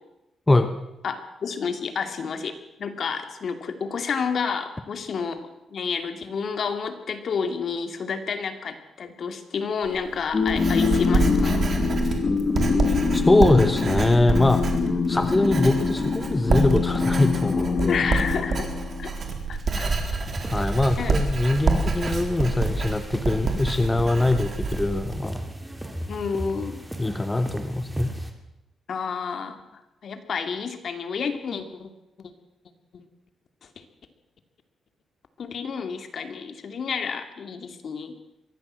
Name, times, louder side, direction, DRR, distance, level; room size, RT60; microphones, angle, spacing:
voice 1, 1.0-2.5 2.8-11.7 17.9-18.7 19.0-19.1 19.5-19.9 21.0-21.1 26.1-26.8 28.9-31.9 32.2-32.3 32.9-33.0 33.6-33.8 35.4-38.1, left 5 dB, 55° left, 8 dB, 2.5 m, -30 dB
Writing, 9.8-25.2, right 3 dB, 40° right, 3.9 m, -27 dB
sound 1, 10.3-19.1, left 5 dB, 35° left, 2.9 m, -24 dB
voice 2, 13.1-14.6 15.1-18.0 20.5-25.4 27.0-28.1, left 2 dB, 15° left, 9 dB, 1.2 m, -22 dB
sound 2, 20.2-28.3, right 1 dB, 10° right, 2.8 m, -36 dB
23.0 x 16.0 x 7.6 m, 0.93 s
cardioid pair, 120°, 0 cm